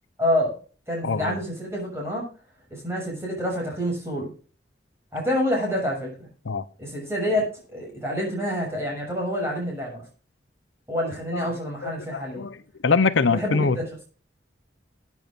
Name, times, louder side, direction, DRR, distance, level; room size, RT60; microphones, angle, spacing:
voice 1, 0.2-0.6 0.9-2.2 2.7-4.3 5.1-6.3 6.8-10.0 10.9-12.4 13.3-14.0, equal, 15° right, 6.6 m, -27 dB
voice 2, 1.0-1.4 6.5-6.6 11.3-11.6 11.8-13.8, left 4 dB, 80° left, 0.8 m, -24 dB
21.0 x 9.4 x 2.5 m
head